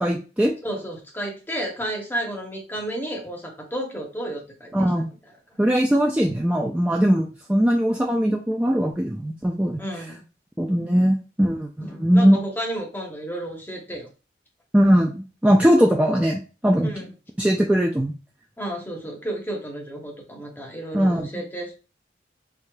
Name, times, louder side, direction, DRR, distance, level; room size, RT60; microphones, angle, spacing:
voice 1, 0.0-0.5 4.7-5.1 5.6-9.8 10.6-12.4 14.7-16.9 17.4-18.1 20.9-21.3, equal, 10° right, 0 dB, 0.3 m, -20 dB
voice 2, 0.6-5.0 9.7-10.3 10.8-10.9 11.8-14.1 16.8-17.1 18.6-21.7, right 1 dB, 10° left, 1 dB, 0.8 m, -32 dB
4.7 x 2.7 x 2.2 m, 0.34 s
head